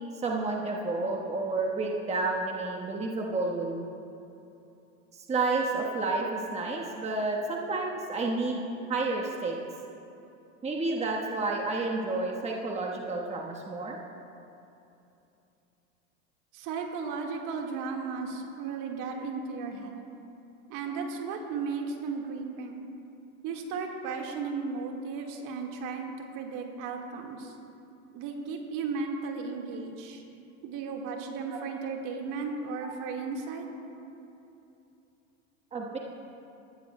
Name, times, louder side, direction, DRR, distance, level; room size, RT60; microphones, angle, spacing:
voice 1, 0.2-3.9 5.1-8.6 8.9-9.6 10.6-14.0 35.7-36.0, right 3 dB, 15° right, -1 dB, 1.2 m, -30 dB
voice 2, 16.5-20.0 20.7-22.9 23.4-27.5 28.1-30.2 30.6-33.7, right 5 dB, 50° right, 2 dB, 1.7 m, -35 dB
19.5 x 14.0 x 2.2 m, 2.8 s
hypercardioid pair, 95°, 41 cm